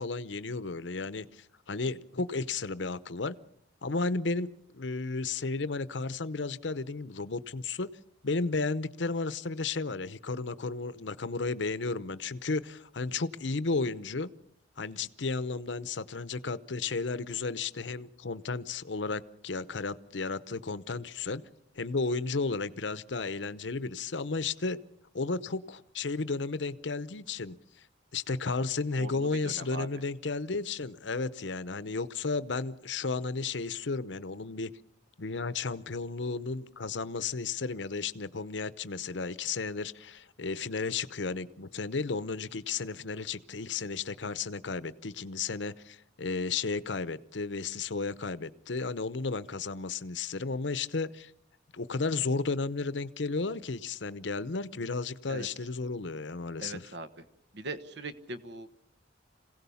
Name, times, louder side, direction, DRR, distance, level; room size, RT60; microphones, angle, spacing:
voice 1, 0.0-3.3 3.8-7.9 8.2-14.3 14.8-21.4 21.7-24.8 25.1-27.6 28.1-34.7 35.2-51.3 51.7-56.9, left 4 dB, 75° left, 15 dB, 0.8 m, -33 dB
voice 2, 29.0-29.9 55.3-55.5 56.6-57.2 57.5-58.7, right 2 dB, 65° right, 12 dB, 1.3 m, -41 dB
26.5 x 17.0 x 7.1 m, 0.76 s
head